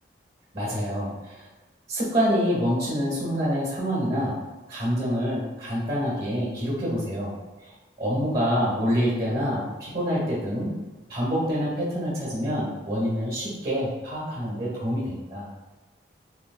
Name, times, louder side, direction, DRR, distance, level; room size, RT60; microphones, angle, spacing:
voice 1, 0.5-1.4 1.9-4.3 4.7-7.3 8.0-10.7 11.1-15.4, equal, 50° right, -7 dB, 1.3 m, -26 dB
3.3 x 2.8 x 2.4 m, 1.1 s
head